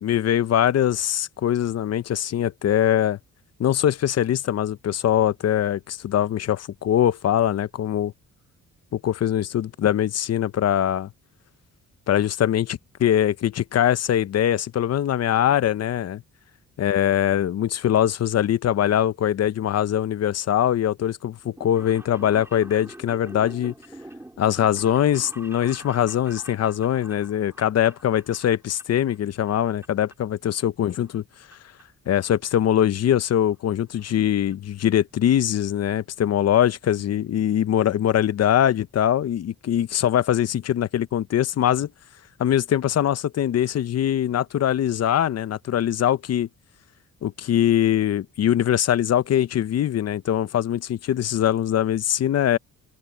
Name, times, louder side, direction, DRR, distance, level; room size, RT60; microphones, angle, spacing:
voice 1, 0.0-3.2 3.6-8.1 8.9-11.1 12.1-16.2 16.8-23.7 24.4-31.2 32.1-41.9 42.4-46.5 47.2-52.6, left 10 dB, 55° left, 0.8 m, -22 dB
sound 1, 21.4-29.2 29.4-30.1 30.5-31.5 31.8-31.9 32.8-32.9 33.1-33.2 33.5-33.6 33.9-34.1 34.5-34.6 34.8-34.9, right 1 dB, 10° right, 3.8 m, -45 dB
open air
cardioid pair, 90°, 31 cm